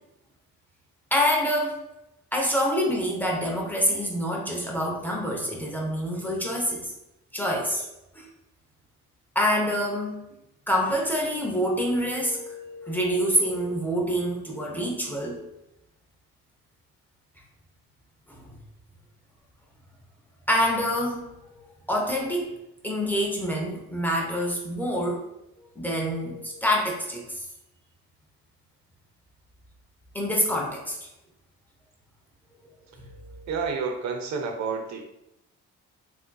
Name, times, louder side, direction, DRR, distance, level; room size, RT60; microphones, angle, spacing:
voice 1, 1.1-1.8 2.3-6.9 7.3-7.8 8.2-8.3 9.3-10.2 10.7-15.4 20.5-21.4 21.9-22.5 22.8-25.2 25.8-27.4 30.1-31.1 33.0-33.5, equal, 5° left, -2 dB, 0.7 m, -26 dB
voice 2, 33.5-35.0, right 5 dB, 65° right, 3 dB, 0.6 m, -29 dB
3.5 x 2.6 x 2.2 m, 0.87 s
cardioid pair, 90°, 30 cm